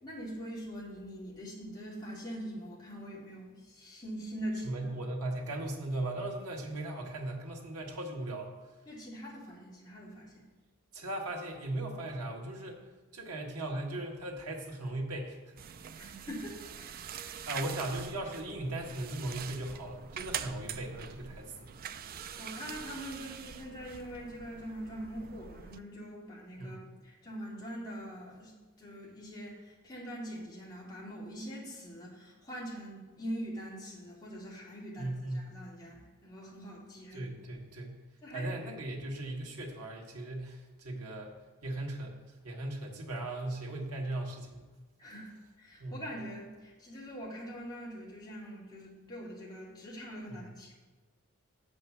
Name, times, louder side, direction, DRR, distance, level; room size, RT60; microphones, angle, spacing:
voice 1, 0.0-4.7 8.9-10.4 16.0-17.1 22.1-28.5 28.8-37.3 38.2-38.5 45.0-50.7, equal, 20° left, -6 dB, 2.3 m, -43 dB
voice 2, 4.6-8.5 10.9-12.8 13.1-15.4 17.0-21.7 26.6-26.9 35.0-35.5 37.1-37.9 38.3-41.3 41.6-42.1 42.4-44.6 45.8-46.0 50.3-50.4, right 1 dB, 90° right, 0 dB, 1.6 m, -38 dB
sound 1, 15.6-25.8, right 8 dB, 40° right, 0.4 m, -44 dB
8.0 x 5.3 x 7.2 m, 1.3 s
head